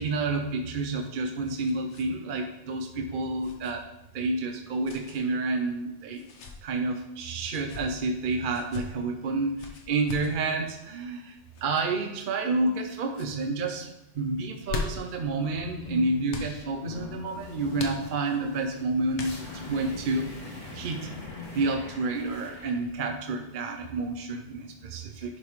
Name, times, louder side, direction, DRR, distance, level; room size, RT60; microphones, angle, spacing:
voice 1, 0.0-3.9 4.1-6.2 6.6-13.9 14.1-20.3 20.7-21.1 21.5-25.4, right 3 dB, 55° right, 5 dB, 0.7 m, -29 dB
sound 1, 0.9-2.1 2.4-2.5 3.4-3.7 4.8-5.2 6.1-6.6 7.4-7.9 8.5-8.8 9.6-10.3 11.5-11.8 12.5-12.8 13.1-13.3 14.4-15.2 16.3-16.5 17.8-18.4 19.1-19.7, left 4 dB, 75° left, 1.2 m, -39 dB
sound 2, 15.5-22.8, left 3 dB, 40° left, 1.4 m, -42 dB
10.5 x 5.2 x 3.1 m, 0.91 s
omnidirectional pair, 1.2 m